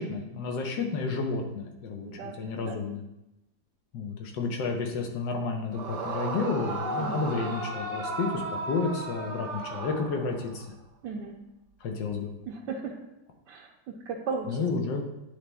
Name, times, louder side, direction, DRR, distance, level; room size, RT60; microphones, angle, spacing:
voice 1, 0.0-3.0 3.9-10.6 11.8-12.3 14.5-15.0, left 4 dB, 75° left, 2 dB, 1.6 m, -31 dB
voice 2, 2.0-2.8 6.9-7.3 11.0-11.3 12.5-12.9 13.5-14.6, right 5 dB, 75° right, -2 dB, 1.3 m, -36 dB
Yell / Screaming, 5.7-10.6, right 2 dB, 55° right, 1.0 m, -34 dB
10.0 x 3.4 x 4.0 m, 0.90 s
omnidirectional pair, 2.0 m